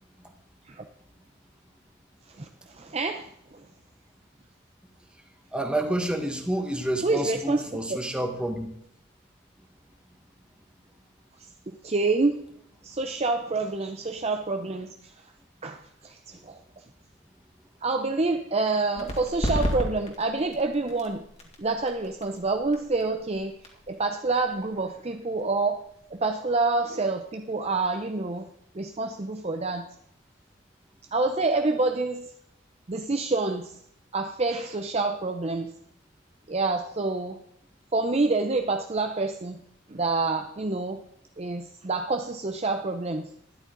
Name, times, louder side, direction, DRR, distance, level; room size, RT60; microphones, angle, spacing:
voice 1, 2.3-3.6 7.0-7.8 11.7-12.5 12.8-15.1 15.6-16.6 17.8-21.2 21.6-23.6 23.9-25.8 26.1-28.5 28.7-29.9 31.1-32.3 32.9-33.8 34.1-35.7 36.5-37.4 37.9-39.6 39.9-41.0 41.4-43.3, right 3 dB, 30° right, 5 dB, 0.7 m, -27 dB
voice 2, 5.5-8.7, right 1 dB, 5° right, 3 dB, 1.6 m, -29 dB
sound 1, 18.9-26.3, equal, 30° left, 2.5 m, -35 dB
13.0 x 11.0 x 3.9 m, 0.72 s
head